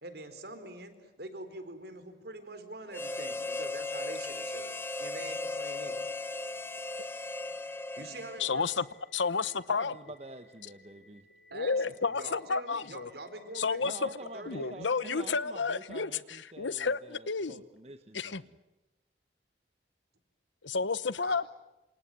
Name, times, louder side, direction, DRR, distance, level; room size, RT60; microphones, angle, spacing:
voice 1, 0.0-6.0 8.0-8.6 11.5-15.4 21.2-21.5, right 2 dB, 60° right, 9 dB, 4.3 m, -45 dB
Harmonica, 2.9-8.7, left 2 dB, 15° left, 1.3 m, -37 dB
sound 1, 3.5-15.5, left 4 dB, 50° left, 3.0 m, -61 dB
voice 2, 8.4-8.9 9.1-9.9 11.5-13.1 13.5-13.9 14.5-16.1 16.6-17.6 18.1-18.4 20.6-21.5, left 4 dB, 90° left, 17 dB, 1.0 m, -31 dB
voice 3, 9.7-11.3 13.8-18.6, right 2 dB, 35° right, 8 dB, 1.2 m, -47 dB
28.0 x 27.0 x 7.7 m, 1.0 s
head